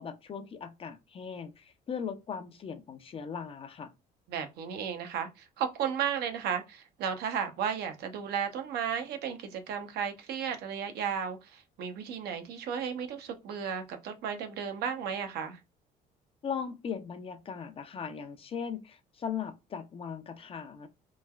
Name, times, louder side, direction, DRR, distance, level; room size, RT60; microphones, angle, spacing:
voice 1, 0.0-3.9 16.4-20.9, left 7 dB, 35° left, 0.4 m, -38 dB
voice 2, 4.3-15.6, right 7 dB, 75° right, 0.6 m, -34 dB
3.1 x 2.3 x 2.2 m
cardioid pair, 110°, 17 cm